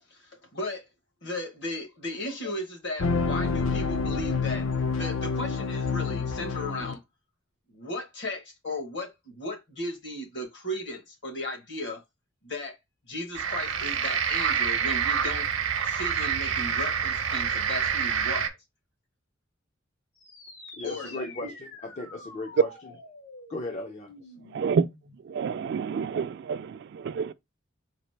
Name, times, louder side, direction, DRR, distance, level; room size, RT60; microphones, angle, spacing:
voice 1, 0.1-0.9 1.2-7.0 7.7-12.0 12.4-12.8 13.0-15.5 15.8-18.5 20.8-21.5, left 1 dB, 60° left, 1.2 m, -36 dB
sound 1, 3.0-6.9, left 4 dB, 90° left, 0.6 m, -28 dB
sound 2, 13.4-18.5, right 7 dB, 80° right, 0.8 m, -27 dB
sound 3, 20.2-25.2, left 2 dB, 75° left, 1.8 m, -47 dB
voice 2, 20.8-22.7 23.5-24.3, left 2 dB, 35° left, 0.4 m, -37 dB
voice 3, 24.5-24.9 25.2-27.3, right 6 dB, 55° right, 0.3 m, -29 dB
4.0 x 2.8 x 3.2 m
head